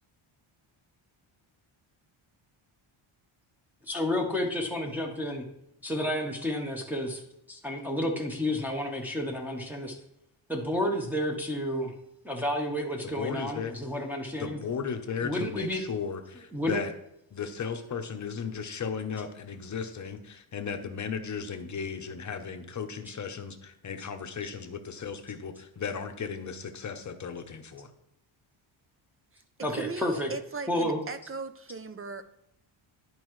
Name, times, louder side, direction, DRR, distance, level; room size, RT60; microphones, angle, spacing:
voice 1, 3.9-5.4 5.8-7.2 7.5-10.0 10.5-11.9 12.2-14.6 15.2-15.8 16.5-16.8 23.0-23.2 29.6-30.3 30.7-31.0, left 1 dB, 5° right, -1 dB, 1.1 m, -31 dB
voice 2, 13.0-13.7 14.4-16.9 17.3-27.9, left 6 dB, 35° left, 7 dB, 0.8 m, -36 dB
voice 3, 29.7-32.3, right 4 dB, 30° right, 11 dB, 0.4 m, -38 dB
11.0 x 4.7 x 3.1 m, 0.81 s
cardioid pair, 115°, 49 cm